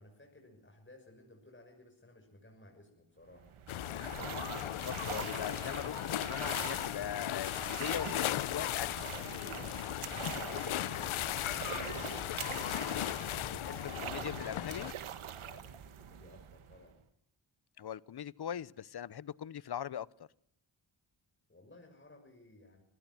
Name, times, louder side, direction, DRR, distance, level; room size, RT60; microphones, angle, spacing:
voice 1, 0.0-4.7 15.4-17.1 21.5-22.8, left 2 dB, 25° left, 2 dB, 6.5 m, -58 dB
sound 1, 3.3-17.0, right 9 dB, 85° right, 1.8 m, -44 dB
sound 2, 3.7-14.9, left 13 dB, 80° left, 0.8 m, -37 dB
voice 2, 4.6-9.1 13.5-14.9 17.8-20.1, left 9 dB, 55° left, 21 dB, 0.9 m, -41 dB
26.0 x 16.5 x 6.2 m, 0.72 s
cardioid pair, 60°, 48 cm